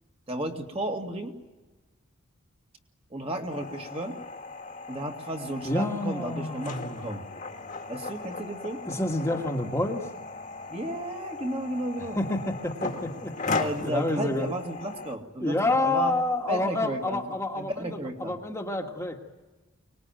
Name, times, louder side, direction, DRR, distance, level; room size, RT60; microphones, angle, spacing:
voice 1, 0.3-1.3 3.1-4.2 4.9-7.2 7.9-8.8 10.7-12.2 13.6-16.1 16.5-18.4, right 1 dB, 25° right, 2 dB, 2.1 m, -33 dB
sound 1, 3.5-15.2, left 3 dB, 35° left, 1.8 m, -37 dB
voice 2, 5.7-7.0 8.9-10.0 12.2-13.5 13.8-14.6 15.4-19.2, left 2 dB, 15° left, 1 dB, 1.7 m, -28 dB
24.5 x 20.5 x 9.0 m, 1.2 s
head